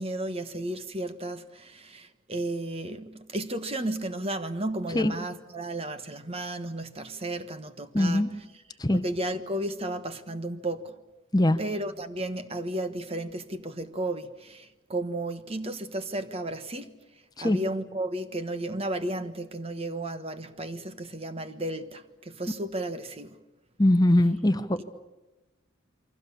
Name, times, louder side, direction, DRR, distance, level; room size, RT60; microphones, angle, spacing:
voice 1, 0.0-8.2 8.9-10.9 11.6-16.9 17.4-23.4, right 1 dB, 30° right, 1.3 m, -33 dB
voice 2, 7.9-8.3 8.8-9.0 11.3-11.6 17.4-17.6 23.8-24.8, left 1 dB, 20° left, 0.8 m, -22 dB
29.0 x 23.5 x 7.0 m
head